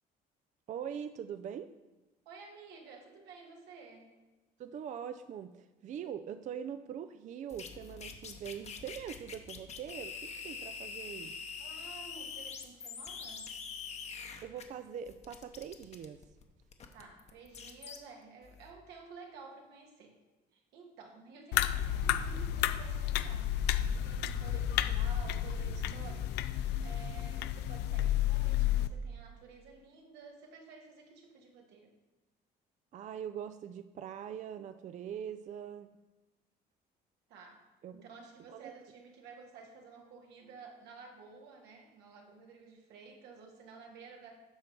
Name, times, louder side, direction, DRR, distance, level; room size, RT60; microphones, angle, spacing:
voice 1, 0.7-1.7 4.6-11.4 14.4-16.2 32.9-35.9 37.8-38.0 38.5-38.7, right 8 dB, 45° right, 10 dB, 0.4 m, -42 dB
voice 2, 2.2-4.1 11.6-13.5 16.9-20.2 20.5-31.9 37.3-37.7 37.9-44.4, right 4 dB, 85° right, 1 dB, 1.6 m, -53 dB
sound 1, 7.5-14.7 15.1-18.0 18.4-18.7, left 6 dB, 40° left, 0.9 m, -44 dB
sound 2, 21.5-28.9, left 11 dB, 85° left, 0.4 m, -31 dB
8.5 x 5.7 x 4.5 m, 1.1 s
cardioid pair, 110°, 17 cm